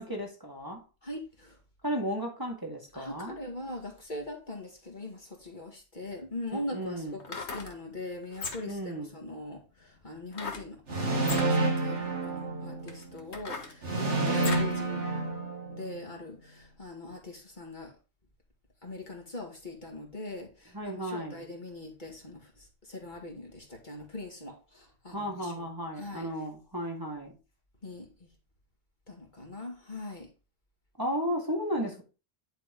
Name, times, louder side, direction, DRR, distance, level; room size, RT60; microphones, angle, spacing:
voice 1, 0.0-0.8 1.8-3.4 6.5-7.2 8.7-9.1 20.7-21.4 25.1-27.4 31.0-32.0, equal, 20° right, 1.8 m, -34 dB
voice 2, 1.0-1.6 2.9-15.0 15.7-17.9 18.8-25.6 26.0-26.3 27.8-28.3 29.1-30.3, left 2 dB, 45° left, 2.3 m, -42 dB
sound 1, 6.0-6.1 7.1-7.7 8.3-8.8 10.3-10.7 11.2-11.5 12.2-12.3 12.9-14.7 15.2-15.3, left 4 dB, 75° left, 1.8 m, -38 dB
sound 2, 10.9-13.1 13.8-16.0, right 2 dB, 85° right, 2.1 m, -29 dB
10.5 x 4.1 x 5.3 m
omnidirectional pair, 1.2 m